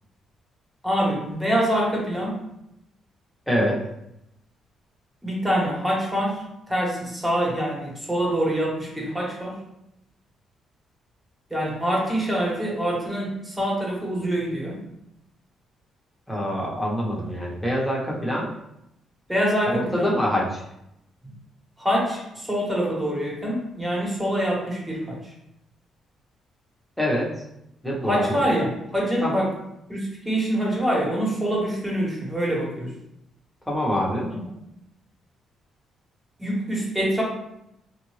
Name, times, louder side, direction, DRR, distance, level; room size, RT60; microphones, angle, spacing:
voice 1, 0.8-2.4 5.2-6.4 6.7-9.6 11.5-14.8 19.3-20.1 21.8-25.2 28.0-29.5 29.9-32.9 34.3-34.4 36.4-37.2, equal, 10° right, -3 dB, 1.4 m, -25 dB
voice 2, 3.5-3.8 16.3-18.5 19.7-20.6 27.0-27.4 27.8-28.4 29.2-29.4 33.7-34.3, equal, 5° left, -4 dB, 1.2 m, -25 dB
3.6 x 2.6 x 3.2 m, 0.81 s
cardioid pair, 90°, 0 cm